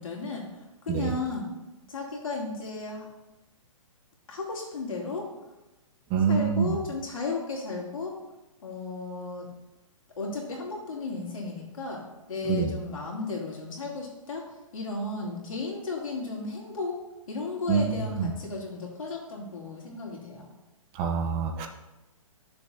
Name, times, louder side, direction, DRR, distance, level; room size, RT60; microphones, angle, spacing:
voice 1, 0.0-1.5 1.9-3.1 4.3-5.3 6.3-8.2 8.6-9.5 10.2-14.4 14.7-17.0 17.3-20.5, left 3 dB, 75° left, -2 dB, 2.8 m, -34 dB
voice 2, 6.1-6.8 12.5-12.7 17.7-18.3 20.9-21.7, right 6 dB, 30° right, 4 dB, 0.7 m, -26 dB
12.0 x 6.8 x 2.7 m, 0.99 s
hypercardioid pair, 135°, 18 cm